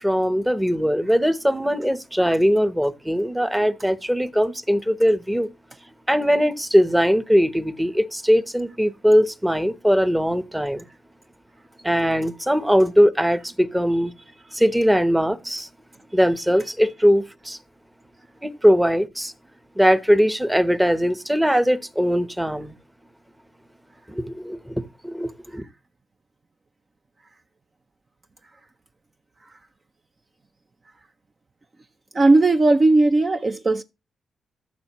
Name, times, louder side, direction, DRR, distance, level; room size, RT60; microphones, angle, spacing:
voice 1, 0.0-5.5 6.1-10.8 11.8-14.1 14.5-15.7 16.1-17.6 18.4-19.3 19.8-22.8 24.1-25.6, equal, 5° right, 0.9 m, -20 dB
voice 2, 32.1-33.8, right 2 dB, 30° right, 0.6 m, -17 dB
14.5 x 6.4 x 3.0 m
cardioid pair, 105°, 0 cm